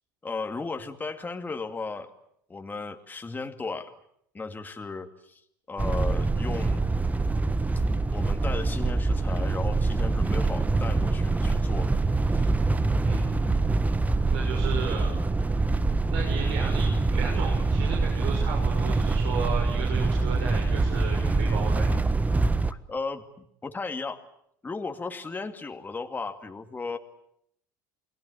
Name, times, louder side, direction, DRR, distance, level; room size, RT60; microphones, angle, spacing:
voice 1, 0.2-2.1 2.5-3.9 4.3-5.4 5.7-6.9 8.1-11.9 12.3-12.5 22.7-23.2 23.6-24.2 24.6-27.0, left 4 dB, 20° left, 5 dB, 2.4 m, -35 dB
sound 1, 5.8-22.7, right 3 dB, 15° right, 1.3 m, -25 dB
voice 2, 13.0-13.5 14.3-15.1 16.1-21.9, right 5 dB, 65° right, 0 dB, 6.6 m, -34 dB
29.5 x 20.5 x 8.5 m, 0.73 s
hypercardioid pair, 80°, 10 cm